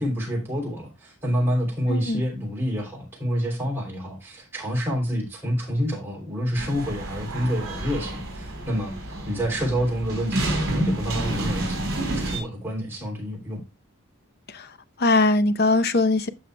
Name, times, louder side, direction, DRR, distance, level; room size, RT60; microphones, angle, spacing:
voice 1, 0.0-13.6, equal, 10° right, 3.1 m, -28 dB
voice 2, 1.9-2.2 14.5-14.7 15.0-16.3, left 2 dB, 45° left, 0.7 m, -21 dB
sound 1, 6.5-12.4, right 1 dB, 50° right, 4.8 m, -30 dB
14.0 x 5.6 x 2.2 m
head